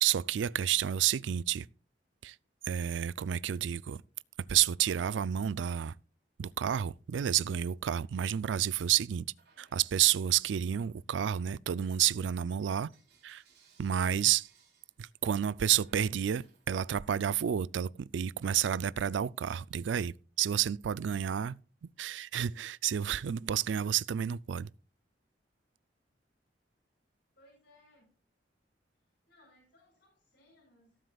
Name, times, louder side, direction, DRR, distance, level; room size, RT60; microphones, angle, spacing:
voice 1, 0.0-1.7 2.2-2.3 2.7-4.0 4.5-5.9 6.4-9.3 9.6-12.9 13.2-13.4 13.8-14.5 15.0-21.6 22.0-24.7, right 10 dB, 85° right, 0.4 m, -30 dB
Bell / Coin (dropping), 9.3-10.9 11.3-17.2, right 6 dB, 65° right, 3.2 m, -67 dB
voice 2, 27.3-28.1 29.0-31.0, left 1 dB, 60° left, 5.2 m, -64 dB
18.0 x 7.7 x 2.3 m
head